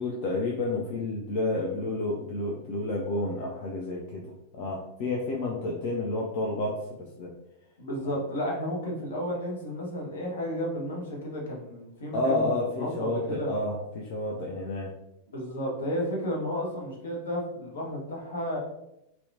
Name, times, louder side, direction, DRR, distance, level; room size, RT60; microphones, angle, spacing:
voice 1, 0.0-6.8 7.2-7.3 8.1-8.2 12.1-14.9, left 2 dB, 45° left, -2 dB, 0.4 m, -30 dB
voice 2, 7.8-13.5 15.3-18.6, equal, 65° left, -2 dB, 0.7 m, -32 dB
2.8 x 2.1 x 2.6 m, 0.85 s
figure-of-eight pair, 90°, 0 cm